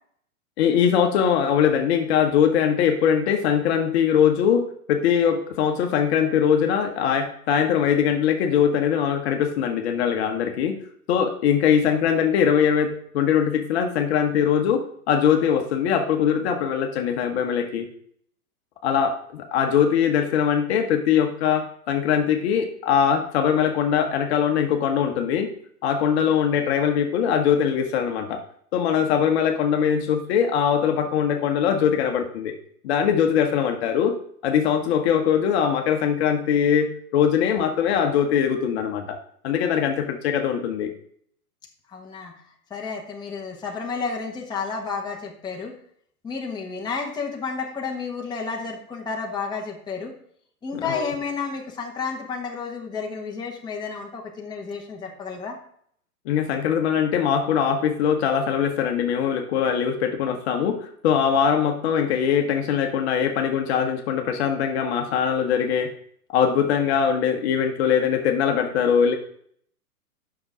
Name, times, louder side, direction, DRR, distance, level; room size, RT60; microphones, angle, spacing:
voice 1, 0.6-10.8 11.1-17.9 18.8-25.5 25.8-28.4 28.7-32.5 32.8-34.2 34.4-39.2 39.4-40.9 50.7-51.1 56.2-65.9 66.3-69.1, left 8 dB, 45° left, 4 dB, 1.2 m, -22 dB
voice 2, 41.9-42.3 42.7-45.7 46.2-50.1 50.6-55.6, left 5 dB, 10° left, -1 dB, 1.3 m, -31 dB
8.6 x 6.1 x 4.8 m, 0.64 s
hypercardioid pair, 130°, 45 cm